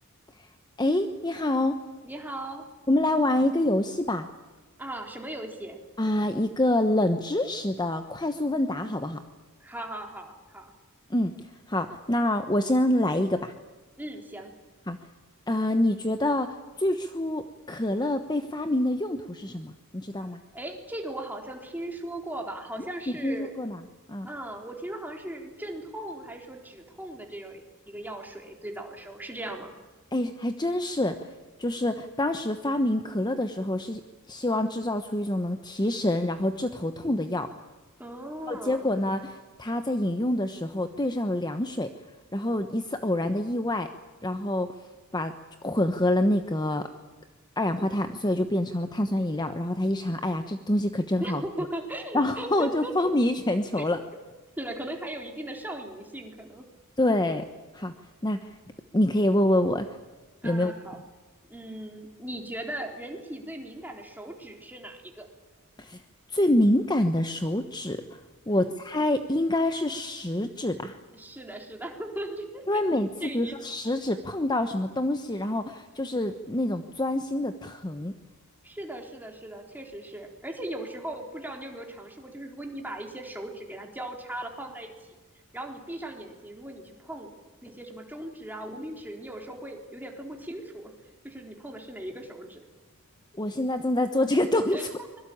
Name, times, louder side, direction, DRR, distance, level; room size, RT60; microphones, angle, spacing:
voice 1, 0.8-1.8 2.9-4.3 6.0-9.2 11.1-11.3 11.7-13.5 14.9-15.0 15.5-20.4 22.8-23.8 24.1-24.3 30.1-31.3 31.6-37.5 38.5-41.9 42.3-43.9 44.2-44.7 45.1-45.3 45.6-46.9 47.6-51.4 52.1-54.0 57.0-57.4 57.7-57.9 58.2-58.6 58.9-59.9 60.4-60.7 65.8-66.0 66.3-68.2 68.5-71.0 72.7-78.1 93.4-94.9, left 1 dB, 20° left, 8 dB, 1.1 m, -26 dB
voice 2, 2.0-2.6 4.8-5.8 9.6-10.7 14.0-14.5 20.5-23.6 24.3-29.7 38.0-38.9 51.2-52.9 53.8-53.9 54.1-54.2 54.6-56.6 60.4-61.0 61.5-65.3 68.5-68.7 71.1-72.6 73.2-73.6 78.6-85.1 85.5-87.3 87.6-90.9 91.2-92.6 94.7-94.8, right 1 dB, 10° right, 2 dB, 3.9 m, -38 dB
25.0 x 22.5 x 8.7 m, 1.2 s
head